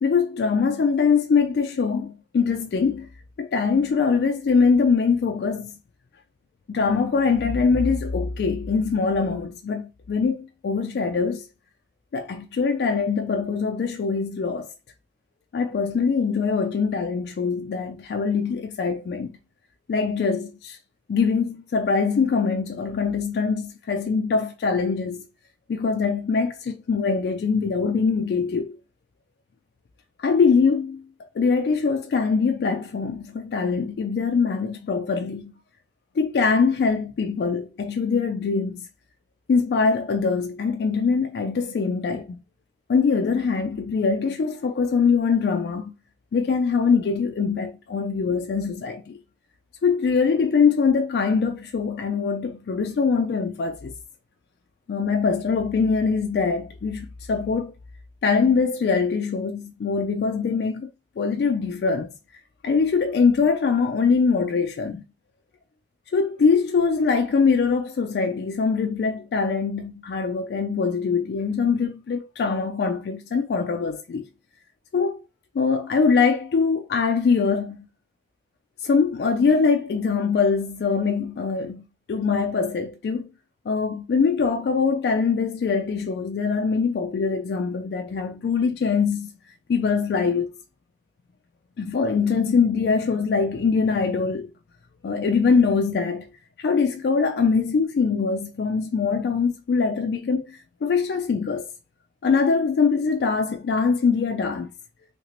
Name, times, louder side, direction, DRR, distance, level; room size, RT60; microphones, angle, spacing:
voice 1, 0.0-3.1 3.4-5.8 6.7-11.5 12.1-14.7 15.5-19.4 19.9-20.8 21.1-25.3 25.7-28.8 30.2-35.6 36.2-38.9 39.5-42.4 42.9-45.9 46.3-49.2 49.8-53.9 54.9-57.7 58.2-60.9 61.2-62.1 62.6-65.0 66.1-74.3 74.9-75.2 75.5-77.9 78.8-83.3 83.7-89.3 89.7-90.5 91.8-94.5 95.0-96.3 96.6-101.7 102.2-104.7, left 5 dB, 70° left, 0.3 m, -23 dB
2.8 x 2.8 x 2.9 m
head